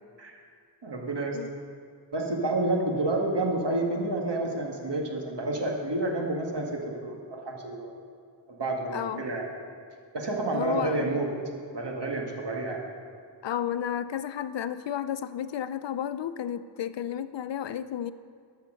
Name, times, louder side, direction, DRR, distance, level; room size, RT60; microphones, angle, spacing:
voice 1, 0.8-1.4 2.1-7.9 8.5-9.5 10.1-11.3 11.7-12.8, right 2 dB, 70° right, 0 dB, 1.9 m, -29 dB
voice 2, 8.9-9.2 10.5-11.2 13.4-18.1, left 9 dB, 80° left, 14 dB, 0.5 m, -32 dB
13.0 x 6.7 x 6.3 m, 2.2 s
wide cardioid pair, 65°, 43 cm